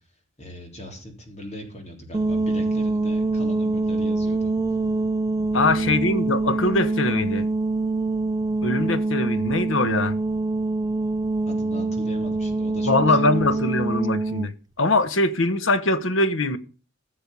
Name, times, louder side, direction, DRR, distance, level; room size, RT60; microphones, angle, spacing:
voice 1, 0.4-4.5 5.5-6.0 11.5-13.5, equal, 35° left, 3.6 m, -39 dB
sound 1, 2.1-14.5, right 3 dB, 20° right, 0.5 m, -24 dB
voice 2, 5.5-7.5 8.6-10.2 12.9-14.5 14.8-16.6, left 2 dB, 85° left, 1.1 m, -22 dB
15.0 x 7.0 x 5.4 m
head